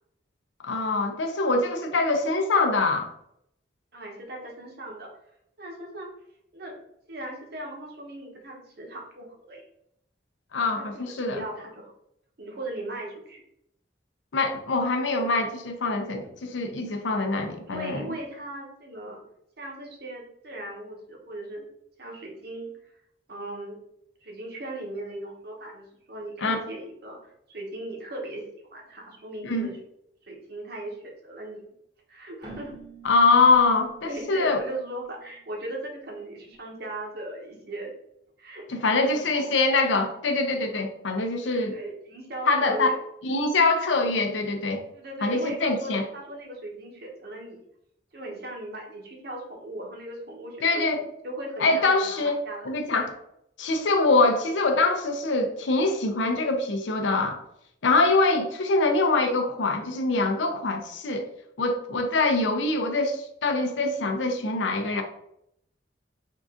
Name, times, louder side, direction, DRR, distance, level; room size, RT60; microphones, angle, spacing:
voice 1, 0.6-3.1 10.5-11.4 14.3-18.0 26.4-26.6 29.4-29.7 33.0-34.6 38.7-41.8 42.5-42.9 43.2-44.8 45.2-46.0 50.6-51.0 51.6-53.2 53.6-57.4 57.8-61.3 61.6-65.0, left 3 dB, 80° left, 5 dB, 0.6 m, -24 dB
voice 2, 3.9-5.1 5.6-6.1 6.5-6.8 7.1-9.7 10.7-10.9 11.3-11.8 12.4-13.4 16.2-16.3 17.7-19.2 19.6-21.6 22.0-22.7 23.3-23.8 24.2-29.8 30.2-31.6 32.1-32.8 34.0-37.9 38.4-38.8 39.1-39.5 41.4-43.0 44.9-47.6 48.1-52.7, right 1 dB, 60° right, 0 dB, 1.0 m, -38 dB
Keyboard (musical), 32.4-36.1, right 4 dB, 25° right, 0.9 m, -49 dB
3.7 x 2.5 x 3.6 m, 0.76 s
head